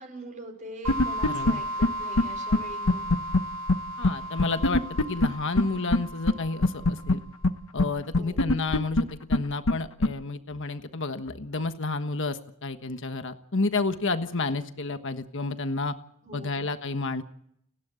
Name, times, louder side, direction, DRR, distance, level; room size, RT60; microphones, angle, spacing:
voice 1, 0.0-3.1 8.2-8.4 16.2-16.6, right 1 dB, 35° right, 3 dB, 5.0 m, -43 dB
sound 1, 0.8-7.4, equal, 85° right, 2.4 m, -36 dB
sound 2, 0.9-1.5 1.8-1.9 2.2-2.3 2.5-2.6 2.9-3.4 3.7-3.8 4.0-4.1 4.4-5.3 5.6-5.7 5.9-6.0 6.3-6.4 6.6-7.1 7.4-7.5 7.8-7.9 8.1-9.0 9.3-9.4 9.7-9.8 10.0-10.1, left 2 dB, 75° left, 1.1 m, -20 dB
voice 2, 1.3-1.6 4.0-7.2 7.7-15.9 16.3-17.2, left 3 dB, 60° left, 9 dB, 1.4 m, -30 dB
30.0 x 11.5 x 8.3 m, 0.71 s
head